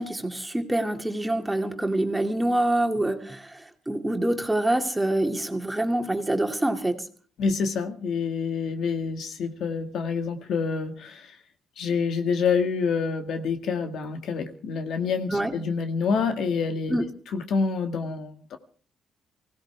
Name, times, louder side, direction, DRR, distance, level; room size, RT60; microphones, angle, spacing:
voice 1, 0.0-7.0 15.3-15.5 16.9-17.1, right 1 dB, 10° right, 2.3 m, -26 dB
voice 2, 7.4-11.4 11.8-18.6, left 5 dB, 70° left, 1.9 m, -27 dB
24.5 x 16.5 x 3.5 m
cardioid pair, 90°, 0 cm